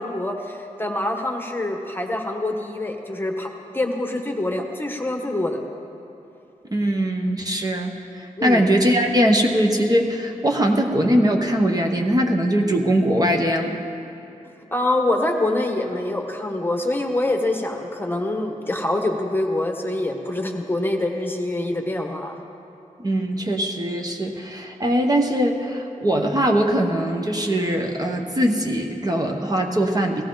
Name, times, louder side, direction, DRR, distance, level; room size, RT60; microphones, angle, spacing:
voice 1, 0.0-5.6 8.4-8.6 14.7-22.4, left 1 dB, 15° left, 3 dB, 1.2 m, -25 dB
voice 2, 6.7-13.8 23.0-30.2, equal, 30° right, 2 dB, 1.0 m, -21 dB
17.0 x 15.0 x 3.9 m, 2.9 s
wide cardioid pair, 115°, 14 cm